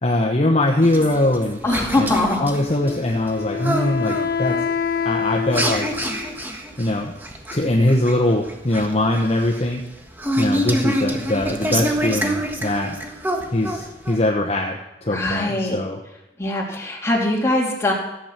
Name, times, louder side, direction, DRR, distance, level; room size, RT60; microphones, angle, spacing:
voice 1, 0.0-1.6 2.0-2.1 2.4-4.7 5.0-5.9 6.8-7.1 7.5-9.8 10.4-12.9 13.5-16.0, left 1 dB, 35° left, 0 dB, 1.1 m, -21 dB
sound 1, 0.8-14.2, equal, 10° right, 1.4 m, -27 dB
voice 2, 1.6-2.4 15.1-15.8 16.4-17.9, left 2 dB, 15° left, -2 dB, 3.0 m, -21 dB
Wind instrument woodwind instrument, 2.8-6.4, left 7 dB, 60° left, 0.8 m, -26 dB
14.5 x 9.1 x 5.9 m, 0.95 s
head